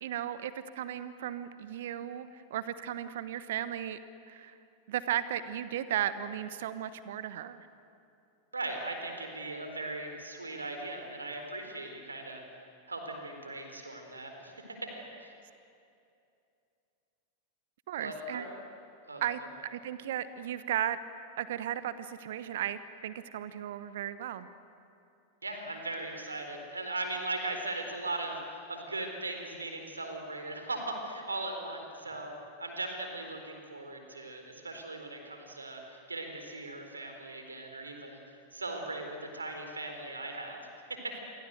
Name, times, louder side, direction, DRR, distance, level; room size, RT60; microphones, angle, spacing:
voice 1, 0.0-4.0 4.3-4.6 4.9-7.7 17.9-18.5 19.2-21.0 21.4-24.5, right 11 dB, 55° right, 14 dB, 1.1 m, -35 dB
voice 2, 8.5-12.4 12.9-14.8 15.2-15.3 18.0-18.5 19.1-19.2 25.4-32.3 32.6-40.6 40.9-41.2, right 2 dB, 80° right, 5 dB, 4.3 m, -39 dB
28.5 x 24.0 x 8.0 m, 2.6 s
figure-of-eight pair, 90°, 0 cm